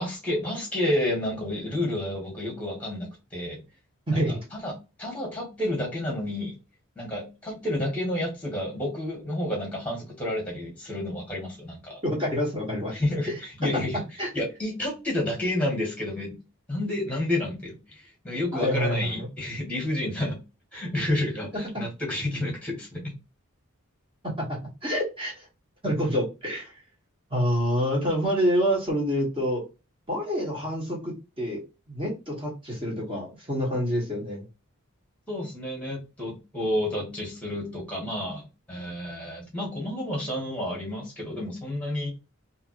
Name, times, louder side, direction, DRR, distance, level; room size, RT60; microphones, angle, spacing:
voice 1, 0.0-3.6 4.1-4.2 4.5-4.7 5.0-6.6 6.9-12.0 12.9-13.3 13.6-14.0 14.3-16.4 16.7-20.4 20.7-23.0 35.3-42.1, left 1 dB, 5° left, 1.5 m, -30 dB
voice 2, 4.1-4.4 12.0-12.9 13.3-13.4 14.2-14.3 18.5-19.3 24.4-25.5 25.8-26.7 27.3-29.6 30.1-34.5, equal, 25° right, 1.6 m, -27 dB
3.5 x 2.8 x 3.1 m
head